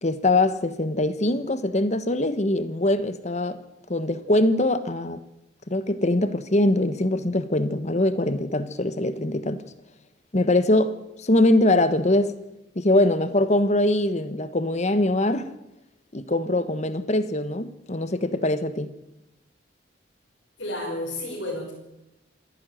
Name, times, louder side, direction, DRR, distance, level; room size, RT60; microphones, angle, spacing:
voice 1, 0.0-3.6 3.9-5.2 5.7-9.6 10.3-10.9 11.2-12.3 12.7-15.5 16.1-18.9, left 1 dB, 40° left, 1.3 m, -22 dB
voice 2, 20.6-21.7, left 1 dB, 75° left, 6.1 m, -31 dB
26.5 x 11.5 x 9.1 m
head